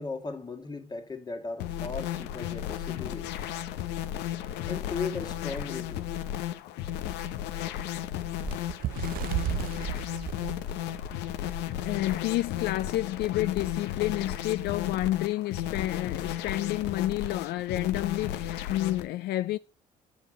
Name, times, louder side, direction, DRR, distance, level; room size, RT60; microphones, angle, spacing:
voice 1, 0.0-3.4 4.7-6.1, left 4 dB, 25° left, 1.7 m, -37 dB
sound 1, 1.6-19.1, left 11 dB, 85° left, 0.8 m, -34 dB
Bird, 8.4-11.6 12.1-12.2 12.5-12.8 13.6-13.7, right 14 dB, 60° right, 0.4 m, -34 dB
voice 2, 11.4-19.6, left 15 dB, 70° left, 0.4 m, -30 dB
9.4 x 5.2 x 7.5 m
cardioid pair, 110°, 17 cm